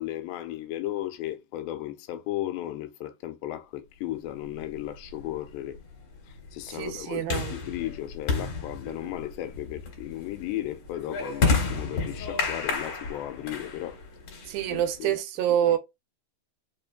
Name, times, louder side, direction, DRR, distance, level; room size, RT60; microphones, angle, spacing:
voice 1, 0.0-5.8 6.3-14.0 14.7-15.2 15.6-15.8, left 14 dB, 85° left, 2.4 m, -35 dB
sound 1, 4.6-15.0, left 5 dB, 50° left, 2.5 m, -31 dB
voice 2, 6.7-7.5 14.5-15.8, right 11 dB, 85° right, 2.5 m, -26 dB
5.6 x 2.5 x 2.2 m
omnidirectional pair, 4.1 m